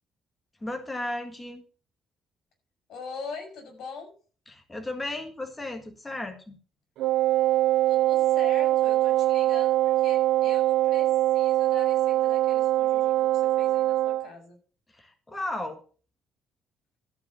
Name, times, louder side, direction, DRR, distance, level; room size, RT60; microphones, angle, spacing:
voice 1, 0.6-1.6 4.5-6.6 14.9-15.8, left 1 dB, 10° left, 5 dB, 1.7 m, -35 dB
voice 2, 2.9-4.1 7.9-14.6, left 4 dB, 65° left, 4 dB, 5.7 m, -42 dB
Wind instrument woodwind instrument, 7.0-14.3, right 15 dB, 85° right, 0.4 m, -23 dB
13.0 x 5.1 x 7.5 m, 0.40 s
cardioid pair, 150°, 0 cm